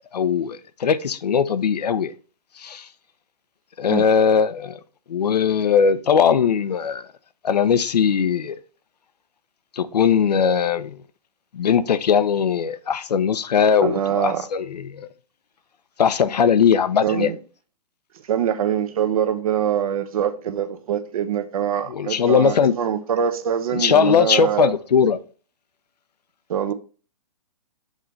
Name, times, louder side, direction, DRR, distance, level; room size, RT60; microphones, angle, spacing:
voice 1, 0.1-2.1 2.6-2.9 3.8-4.8 5.1-7.0 7.4-8.6 9.7-11.0 11.5-15.1 16.0-17.3 21.9-22.7 23.7-25.2, left 7 dB, 85° left, 0.7 m, -19 dB
voice 2, 13.8-14.5 17.0-17.4 18.3-24.7 26.5-26.7, right 9 dB, 60° right, 1.0 m, -24 dB
6.4 x 3.2 x 5.3 m
hypercardioid pair, 140°, 20 cm